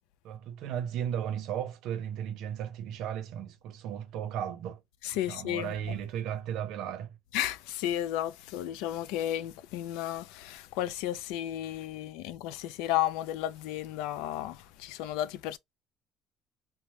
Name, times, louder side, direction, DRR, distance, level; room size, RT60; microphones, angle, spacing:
voice 1, 0.2-4.8 5.3-7.2, right 9 dB, 55° right, 0.6 m, -35 dB
voice 2, 5.0-6.0 7.3-15.6, left 12 dB, 90° left, 0.3 m, -33 dB
3.1 x 2.0 x 2.8 m
cardioid pair, 170°, 0 cm